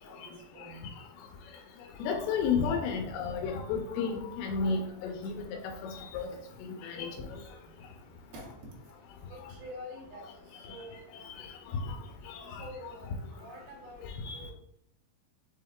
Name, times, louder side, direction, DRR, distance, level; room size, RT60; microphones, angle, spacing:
voice 1, 0.1-0.9 8.3-8.5 9.3-10.3 10.7-11.0 12.6-14.5, equal, 85° right, -2 dB, 3.1 m, -47 dB
voice 2, 2.0-6.3 6.6-7.2 10.7-10.8 11.4-12.0 12.3-12.7 14.2-14.4, left 5 dB, 85° left, 3 dB, 2.5 m, -32 dB
6.6 x 2.2 x 3.6 m, 0.77 s
omnidirectional pair, 4.4 m